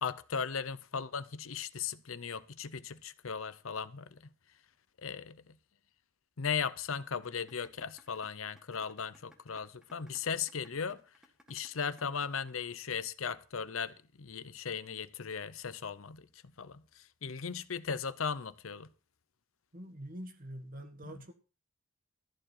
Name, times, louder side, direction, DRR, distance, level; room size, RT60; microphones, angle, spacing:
voice 1, 0.0-4.3 5.0-5.6 6.4-11.0 11.5-18.9 21.0-21.3, left 6 dB, 80° left, 0.8 m, -37 dB
sound 1, 7.2-13.2, left 1 dB, 5° right, 1.8 m, -61 dB
voice 2, 19.7-21.3, right 1 dB, 45° right, 1.7 m, -45 dB
14.5 x 4.8 x 9.1 m
head